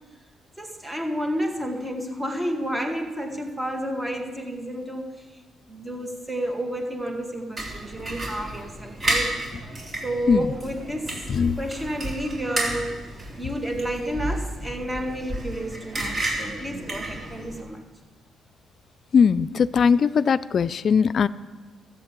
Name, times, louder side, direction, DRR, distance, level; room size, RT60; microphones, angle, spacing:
voice 1, 0.6-5.1 5.7-9.4 10.0-13.0 13.4-17.8, right 1 dB, 10° right, 3 dB, 2.1 m, -30 dB
sound 1, 7.6-17.6, right 1 dB, 35° right, 3.6 m, -32 dB
voice 2, 19.1-21.3, left 6 dB, 55° left, 16 dB, 0.4 m, -19 dB
14.0 x 8.1 x 7.5 m, 1.3 s
cardioid pair, 90°, 0 cm